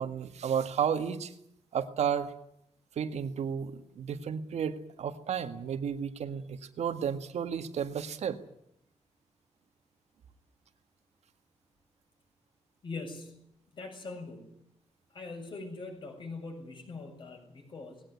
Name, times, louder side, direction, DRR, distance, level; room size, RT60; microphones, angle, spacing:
voice 1, 0.0-1.3 1.7-2.3 3.0-8.4, right 8 dB, 80° right, 9 dB, 1.9 m, -32 dB
voice 2, 12.8-13.4 13.7-14.6 15.1-18.0, left 3 dB, 45° left, 3 dB, 7.2 m, -42 dB
19.5 x 18.0 x 10.0 m, 0.74 s
wide cardioid pair, 175°, 11 cm